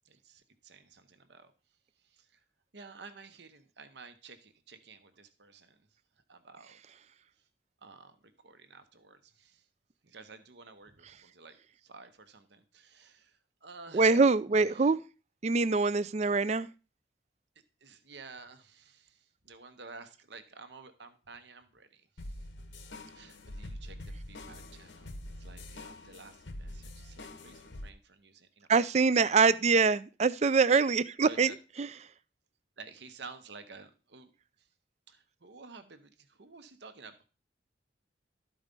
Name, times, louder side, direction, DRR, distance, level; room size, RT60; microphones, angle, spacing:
voice 1, 0.0-1.5 2.0-2.4 2.7-5.8 6.3-6.8 7.4-7.5 7.8-9.7 10.0-14.3 14.6-14.9 16.2-16.3 17.8-22.5 23.1-28.7 29.1-29.4 31.2-31.6 32.8-34.3 34.6-34.7 35.1-37.2, right 4 dB, 70° right, 1.0 m, -52 dB
voice 2, 13.9-15.0 15.4-16.7 28.7-31.5 31.8-31.9, right 4 dB, 35° right, 0.4 m, -24 dB
sound 1, 22.2-27.9, left 1 dB, 85° left, 1.2 m, -45 dB
12.5 x 4.8 x 5.2 m
head